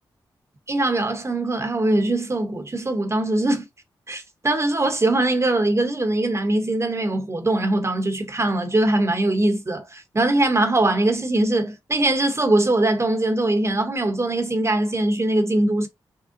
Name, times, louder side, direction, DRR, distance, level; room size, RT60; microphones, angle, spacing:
voice 1, 0.7-3.7 4.1-15.9, right 2 dB, 30° right, 0.9 m, -21 dB
3.7 x 2.0 x 2.6 m
supercardioid pair, 45°, 9 cm